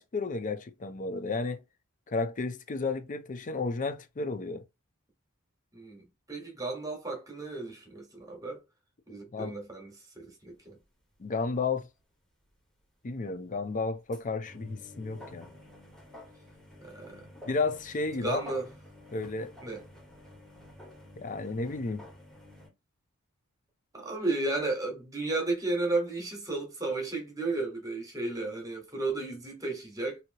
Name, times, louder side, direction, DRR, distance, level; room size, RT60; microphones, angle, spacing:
voice 1, 0.0-1.6 2.1-4.6 9.3-9.6 11.2-11.9 13.0-15.5 17.4-18.4 19.1-19.5 21.2-22.0, left 3 dB, 35° left, 0.5 m, -32 dB
voice 2, 6.3-8.6 9.1-10.8 16.8-17.2 18.2-18.7 19.6-19.8 23.9-30.2, right 2 dB, 15° right, 1.3 m, -33 dB
sound 1, 10.8-10.9 11.1-11.4 11.7-11.8 12.0-12.1 13.9-22.7, left 1 dB, 5° left, 1.3 m, -50 dB
2.9 x 2.8 x 2.8 m
head